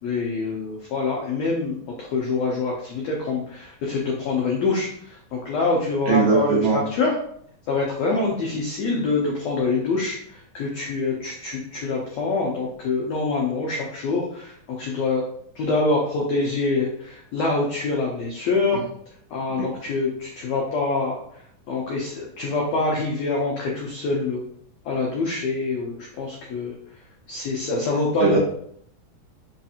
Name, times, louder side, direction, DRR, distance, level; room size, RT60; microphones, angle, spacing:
voice 1, 0.0-7.1 7.7-15.2 15.5-18.8 19.3-21.2 21.7-24.4 24.8-26.7 27.3-28.4, left 3 dB, 80° left, -2 dB, 1.5 m, -25 dB
voice 2, 6.1-6.8 19.6-19.7 28.2-28.4, right 5 dB, 60° right, -6 dB, 1.6 m, -19 dB
5.1 x 2.4 x 2.8 m, 0.65 s
omnidirectional pair, 3.8 m